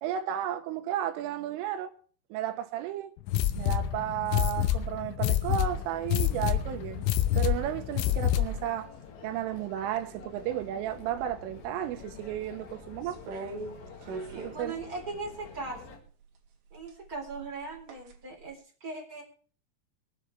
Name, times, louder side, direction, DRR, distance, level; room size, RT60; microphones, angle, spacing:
voice 1, 0.0-1.9 2.3-3.1 3.6-7.1 7.4-8.9 9.2-13.2 14.4-14.7, right 11 dB, 85° right, 3.6 m, -33 dB
sound 1, 3.3-8.7, left 11 dB, 80° left, 3.3 m, -27 dB
sound 2, 5.5-16.0, left 5 dB, 65° left, 4.1 m, -49 dB
sound 3, 13.0-15.8 16.7-18.2 18.5-18.6, right 3 dB, 65° right, 3.8 m, -41 dB
voice 2, 14.5-16.0 16.7-19.2, right 3 dB, 20° right, 3.5 m, -39 dB
24.0 x 9.3 x 3.3 m
omnidirectional pair, 5.7 m